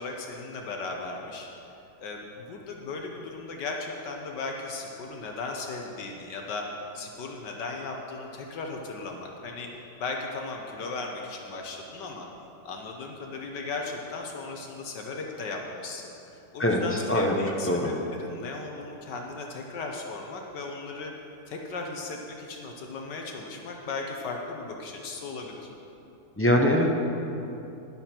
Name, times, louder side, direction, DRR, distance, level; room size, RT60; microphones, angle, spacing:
voice 1, 0.0-1.5 2.0-6.7 6.9-9.7 10.0-12.3 12.6-21.1 21.5-25.7, left 3 dB, 75° left, 1 dB, 1.6 m, -36 dB
voice 2, 26.4-26.9, left 1 dB, 20° left, 0 dB, 0.4 m, -22 dB
13.0 x 11.0 x 4.4 m, 2.9 s
omnidirectional pair, 1.9 m